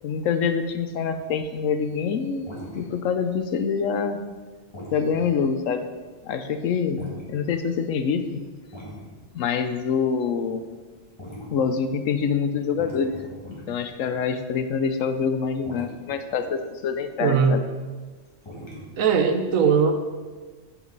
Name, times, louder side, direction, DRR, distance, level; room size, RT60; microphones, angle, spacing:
voice 1, 0.0-2.5 2.7-4.2 4.9-5.9 6.2-8.4 9.3-10.6 11.5-13.1 13.4-17.6, left 6 dB, 80° left, 9 dB, 1.0 m, -25 dB
sound 1, 1.1-1.9 2.2-3.6 3.9-4.3 4.7-6.4 6.8-7.8 8.5-9.1 9.6-9.7 10.0-14.6 14.9-15.3 15.6-16.0 16.9-17.2 17.6-17.9 18.4-18.9, equal, 20° left, 1.8 m, -41 dB
voice 2, 17.2-17.6 19.0-19.9, right 6 dB, 90° right, 6 dB, 1.3 m, -19 dB
8.5 x 7.2 x 4.0 m, 1.4 s
omnidirectional pair, 1.4 m